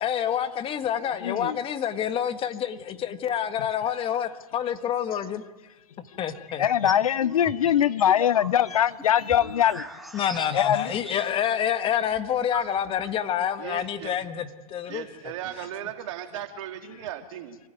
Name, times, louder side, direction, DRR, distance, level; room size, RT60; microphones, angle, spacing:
voice 1, 0.0-5.4 6.2-6.7 10.1-15.0, left 9 dB, 30° left, 10 dB, 1.7 m, -28 dB
voice 2, 1.2-1.6 6.6-9.9 10.5-11.0, left 10 dB, 70° left, 19 dB, 0.9 m, -22 dB
sound 1, 6.5-7.1 7.4-11.6 11.9-12.0 12.1-13.1, right 1 dB, ahead, 1.9 m, -41 dB
voice 3, 13.6-14.1 14.9-17.6, right 11 dB, 55° right, 5 dB, 3.0 m, -37 dB
27.5 x 15.5 x 9.4 m, 1.2 s
figure-of-eight pair, 100°, 19 cm